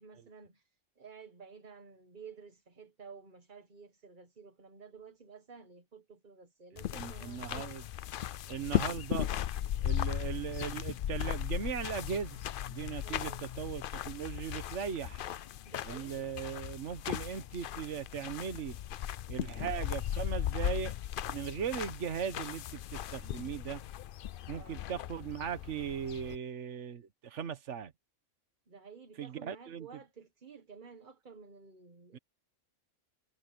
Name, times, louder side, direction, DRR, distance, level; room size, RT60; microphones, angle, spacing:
voice 1, 0.0-7.7 13.0-13.4 15.6-16.3 24.5-24.8 28.7-32.2, right 5 dB, 40° right, 1.4 m, -53 dB
sound 1, 6.8-26.4, left 11 dB, 60° left, 0.6 m, -37 dB
voice 2, 6.9-7.8 8.5-9.3 9.8-12.4 12.7-15.3 15.8-18.8 19.3-20.9 21.3-23.8 24.5-27.9 29.2-29.9 32.1-32.2, right 8 dB, 70° right, 1.5 m, -38 dB
omnidirectional pair, 1.3 m